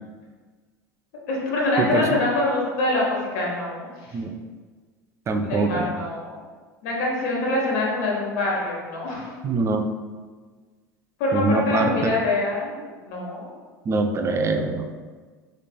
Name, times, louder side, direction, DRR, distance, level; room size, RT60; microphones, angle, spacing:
voice 1, 1.3-4.2 5.4-6.3 6.8-9.3 11.2-12.7 13.0-13.5, left 2 dB, 60° left, -4 dB, 1.1 m, -25 dB
voice 2, 5.3-5.9 9.4-9.9 11.3-12.2 13.9-14.9, right 3 dB, 25° right, 6 dB, 0.4 m, -23 dB
4.2 x 3.1 x 2.2 m, 1.4 s
figure-of-eight pair, 75°, 10 cm